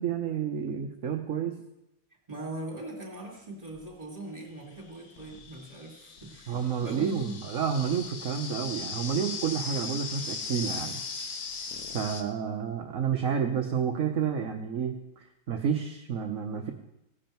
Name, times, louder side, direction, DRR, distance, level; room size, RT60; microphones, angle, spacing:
voice 1, 0.0-1.6 6.5-11.0 11.9-16.7, right 7 dB, 50° right, 3 dB, 1.1 m, -30 dB
voice 2, 2.3-7.3, right 2 dB, 20° right, 0 dB, 2.7 m, -40 dB
sound 1, 3.8-3.9 4.8-12.2, left 5 dB, 55° left, 1.5 m, -38 dB
16.5 x 11.0 x 4.5 m, 0.88 s
omnidirectional pair, 2.2 m